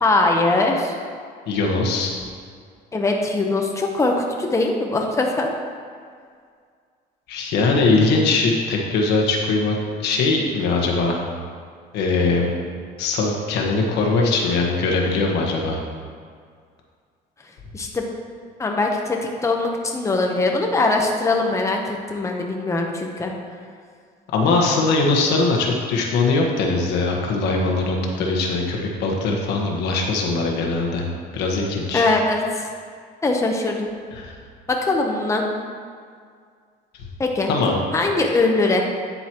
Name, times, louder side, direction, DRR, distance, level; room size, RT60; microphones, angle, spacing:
voice 1, 0.0-1.0 2.9-5.5 17.7-18.1 18.6-23.3 31.9-32.7 33.2-33.9 34.7-35.5 37.2-37.5 37.9-38.8, left 2 dB, 15° left, 1 dB, 1.0 m, -21 dB
voice 2, 1.5-2.1 7.3-11.2 11.9-12.5 13.0-15.8 24.3-31.0 31.3-32.1 34.2-34.3 37.5-37.8, left 3 dB, 85° left, 0 dB, 1.5 m, -21 dB
9.6 x 8.0 x 3.1 m, 2.1 s
cardioid pair, 110°, 17 cm